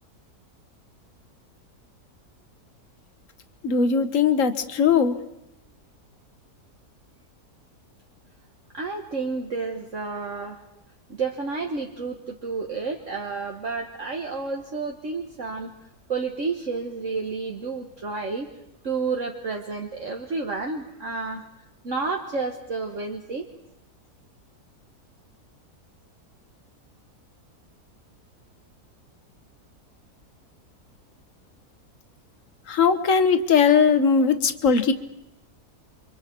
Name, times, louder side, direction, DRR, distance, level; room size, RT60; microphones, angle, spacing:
voice 1, 3.6-5.1 32.7-34.9, left 6 dB, 55° left, 10 dB, 1.6 m, -19 dB
voice 2, 8.7-10.6 11.1-15.7 16.1-18.5 18.8-21.4 21.8-23.5, right 4 dB, 50° right, 2 dB, 1.7 m, -30 dB
30.0 x 24.5 x 4.6 m, 0.88 s
omnidirectional pair, 1.7 m